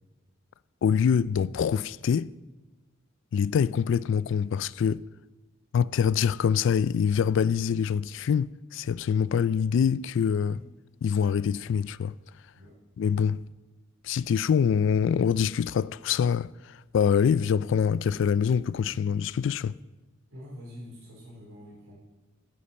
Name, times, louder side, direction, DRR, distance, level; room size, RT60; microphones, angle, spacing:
voice 1, 0.8-2.3 3.3-5.0 5.7-10.6 11.0-12.1 13.0-13.4 14.0-19.8, left 7 dB, 60° left, 0.3 m, -25 dB
voice 2, 20.3-22.0, equal, 90° right, 4.1 m, -45 dB
9.3 x 8.6 x 7.0 m
head